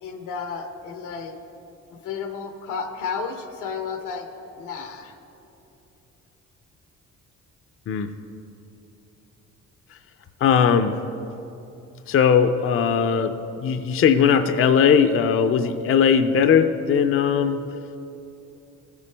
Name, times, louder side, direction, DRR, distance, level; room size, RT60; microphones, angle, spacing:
voice 1, 0.0-1.4 1.9-4.3 4.6-5.1, left 5 dB, 90° left, 6 dB, 1.0 m, -32 dB
voice 2, 10.4-10.9 12.1-13.3 13.6-17.6, left 7 dB, 45° left, 9 dB, 0.5 m, -19 dB
15.0 x 6.8 x 3.4 m, 2.9 s
cardioid pair, 90°, 30 cm